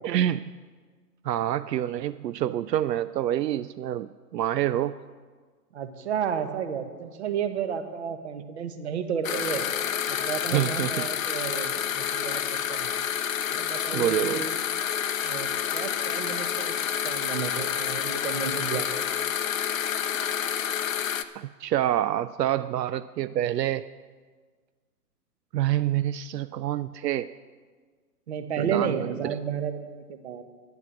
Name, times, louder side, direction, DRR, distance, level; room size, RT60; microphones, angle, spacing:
voice 1, 0.0-0.6 1.2-5.0 10.5-11.1 13.9-14.4 21.4-23.9 25.5-27.3 28.6-29.4, right 12 dB, 80° right, 14 dB, 0.6 m, -27 dB
voice 2, 5.7-9.6 10.1-12.9 13.5-14.5 15.2-16.7 17.0-19.0 28.3-30.4, right 7 dB, 40° right, 9 dB, 1.1 m, -32 dB
sound 1, 9.2-21.2, left 9 dB, 55° left, 0.7 m, -29 dB
10.5 x 9.7 x 7.1 m, 1.5 s
hypercardioid pair, 165°, 48 cm